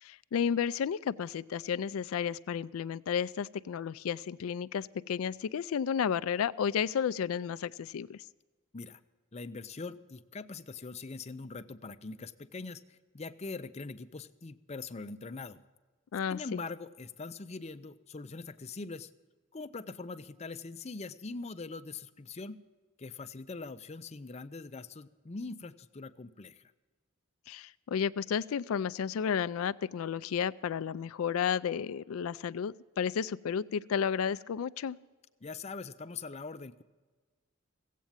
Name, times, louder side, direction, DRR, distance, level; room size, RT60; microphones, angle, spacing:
voice 1, 0.0-8.2 16.1-16.6 27.5-35.0, left 7 dB, 85° left, 15 dB, 0.4 m, -32 dB
voice 2, 9.3-15.6 16.3-19.1 19.5-22.6 23.0-26.7 35.4-36.8, left 3 dB, 30° left, 11 dB, 0.5 m, -42 dB
16.0 x 8.3 x 8.8 m, 1.3 s
head